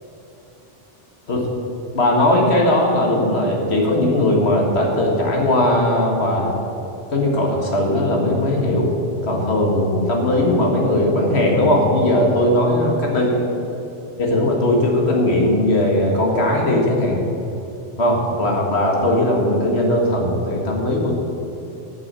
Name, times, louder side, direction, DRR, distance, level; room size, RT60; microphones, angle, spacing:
voice 1, 1.9-6.6 7.1-8.9 9.2-13.3 14.2-17.2 18.0-21.2, left 1 dB, 85° left, 0 dB, 2.1 m, -18 dB
10.5 x 8.4 x 7.5 m, 2.9 s
omnidirectional pair, 1.1 m